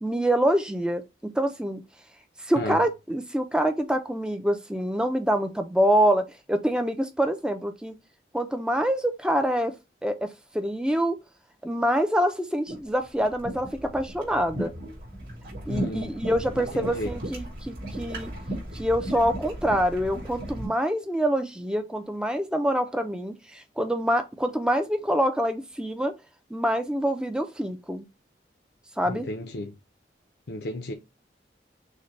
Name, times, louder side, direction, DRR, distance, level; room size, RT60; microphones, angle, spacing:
voice 1, 0.0-1.8 2.4-8.0 8.3-9.7 10.0-10.3 10.5-11.2 11.6-14.7 15.7-18.3 18.7-26.1 26.5-28.0 29.0-29.3, equal, 5° right, 0.5 m, -26 dB
sound 1, 12.7-20.7, right 1 dB, 50° right, 3.0 m, -36 dB
voice 2, 15.7-16.1 16.6-17.1 29.1-29.7 30.5-30.9, left 1 dB, 70° left, 0.6 m, -33 dB
6.5 x 2.2 x 3.2 m
head